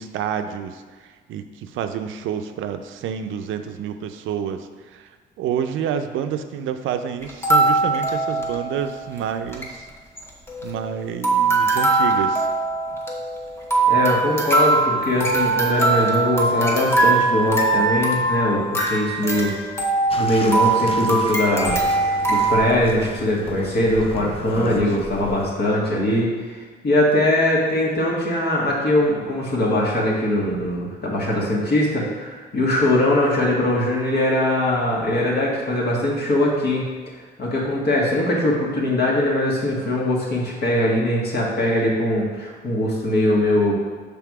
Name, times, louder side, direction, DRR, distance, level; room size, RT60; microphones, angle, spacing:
voice 1, 0.0-5.1 5.4-9.9 10.6-12.5 24.5-24.8, right 8 dB, 80° right, 8 dB, 0.4 m, -29 dB
sound 1, 7.2-8.9 9.2-9.3 9.5-9.7 10.2-10.9 11.2-22.6, right 3 dB, 10° left, 1.0 m, -21 dB
voice 2, 13.9-19.6 20.2-21.7 22.0-26.6 26.8-36.8 37.4-43.7, left 1 dB, 55° left, -3 dB, 1.7 m, -21 dB
Bathtub (filling or washing), 20.1-25.5, left 3 dB, 30° left, 0.5 m, -34 dB
5.9 x 3.5 x 4.7 m, 1.4 s
cardioid pair, 90°, 20 cm